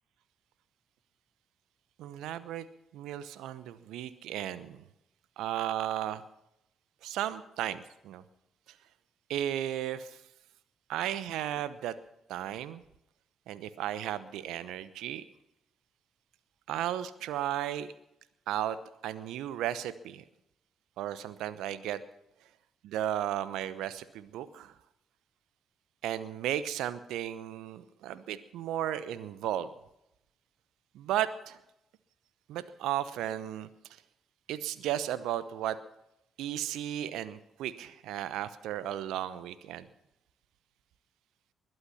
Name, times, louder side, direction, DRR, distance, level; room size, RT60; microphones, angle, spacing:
voice 1, 2.0-2.7 2.9-4.8 5.4-6.2 7.0-8.2 9.3-10.2 10.9-11.9 12.3-12.8 13.5-15.2 16.7-17.9 18.5-18.8 19.0-20.2 21.0-22.0 22.8-24.7 26.0-29.7 30.9-31.6 32.5-33.7 34.5-35.8 36.4-39.9, right 11 dB, 70° right, 15 dB, 0.9 m, -34 dB
21.0 x 11.5 x 5.7 m, 0.84 s
hypercardioid pair, 40°, 0 cm